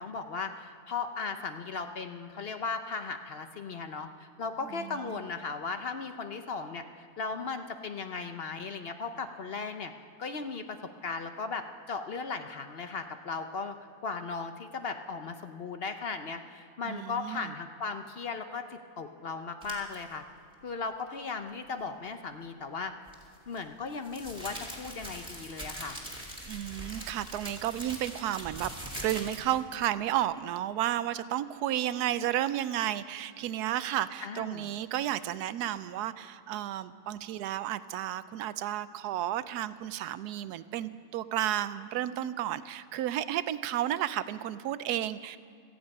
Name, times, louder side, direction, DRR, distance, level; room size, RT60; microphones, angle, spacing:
voice 1, 0.0-9.9 10.2-10.8 11.0-13.7 14.0-20.2 20.6-22.9 23.5-26.0 34.2-34.7, left 4 dB, 50° left, 7 dB, 0.8 m, -37 dB
voice 2, 4.7-5.3 16.8-17.5 26.4-45.4, right 12 dB, 85° right, 14 dB, 1.1 m, -32 dB
sound 1, 19.6-20.0 23.1-29.6, equal, 5° right, 2.6 m, -42 dB
17.5 x 14.5 x 5.4 m, 2.4 s
omnidirectional pair, 1.6 m